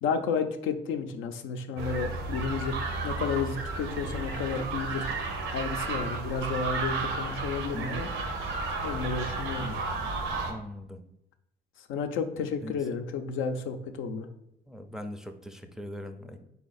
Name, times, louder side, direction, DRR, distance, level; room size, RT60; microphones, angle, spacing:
voice 1, 0.0-2.8 3.0-5.1 5.5-8.1 8.8-9.8 11.9-14.3, left 5 dB, 90° left, 6 dB, 0.5 m, -32 dB
sound 1, 1.8-10.5, right 3 dB, 90° right, 0.7 m, -33 dB
voice 2, 7.7-8.1 10.5-11.0 12.6-12.8 14.7-16.4, equal, 5° right, 5 dB, 0.4 m, -40 dB
4.0 x 2.9 x 4.0 m, 0.82 s
cardioid pair, 90°, 20 cm